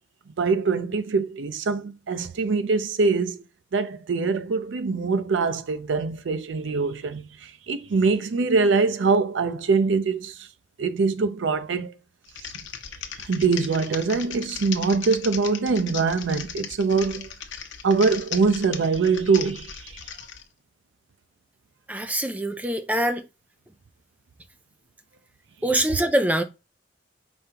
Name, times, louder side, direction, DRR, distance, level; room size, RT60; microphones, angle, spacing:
voice 1, 0.4-3.4 3.7-10.5 10.8-11.9 13.2-17.3 17.8-20.0, right 4 dB, 85° right, 0.5 m, -23 dB
Typing, 12.3-20.4, left 8 dB, 90° left, 0.8 m, -37 dB
voice 2, 21.9-23.2 25.6-26.4, right 1 dB, 10° right, 0.4 m, -24 dB
5.2 x 3.4 x 2.8 m
head